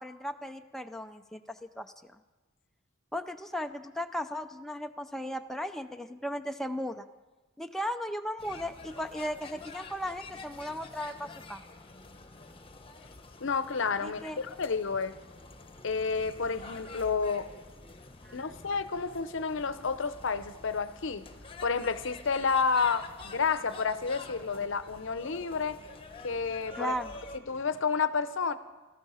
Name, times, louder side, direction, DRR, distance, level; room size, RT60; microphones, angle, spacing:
voice 1, 0.0-2.1 3.1-7.1 7.6-11.6 14.0-14.4 18.2-18.5 26.7-27.2, equal, ahead, 0.5 m, -36 dB
sound 1, 8.4-27.4, left 3 dB, 25° left, 1.0 m, -48 dB
voice 2, 13.4-15.2 15.8-17.5 18.3-21.3 21.6-25.8 26.2-26.9 27.5-28.6, left 5 dB, 65° left, 0.7 m, -30 dB
18.0 x 14.0 x 5.6 m
head